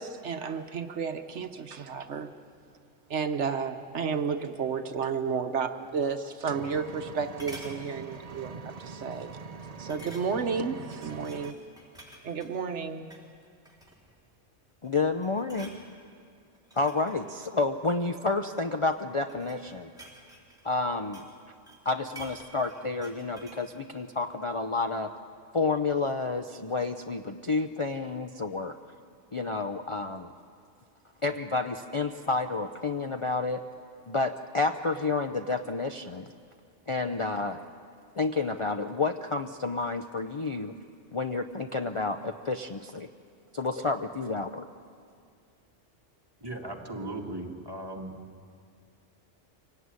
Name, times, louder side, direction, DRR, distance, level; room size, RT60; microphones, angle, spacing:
voice 1, 0.0-2.3 3.1-9.3 9.8-11.6 12.2-13.1, right 6 dB, 70° right, 7 dB, 1.2 m, -32 dB
Engine, 6.5-11.5, right 4 dB, 35° right, 0.8 m, -43 dB
sound 1, 6.6-7.1 7.4-7.8 8.3-8.5 8.9-9.0 9.9-10.5 10.9-12.5 13.0-13.3 13.6-14.2 14.7-15.0 15.2-15.8 16.5-18.2 19.0-21.4 21.7-23.7 24.0-24.1, right 1 dB, 5° right, 4.2 m, -49 dB
voice 2, 14.8-15.8 16.8-19.9 20.6-21.2 21.8-25.1 25.5-28.8 29.3-30.3 31.2-33.6 34.1-36.3 36.9-37.6 38.1-40.7 41.1-43.1 43.5-44.7, left 3 dB, 35° left, 6 dB, 0.6 m, -30 dB
voice 3, 46.4-48.2, right 2 dB, 20° right, 0 dB, 2.2 m, -37 dB
24.5 x 17.5 x 9.6 m, 2.3 s
omnidirectional pair, 1.2 m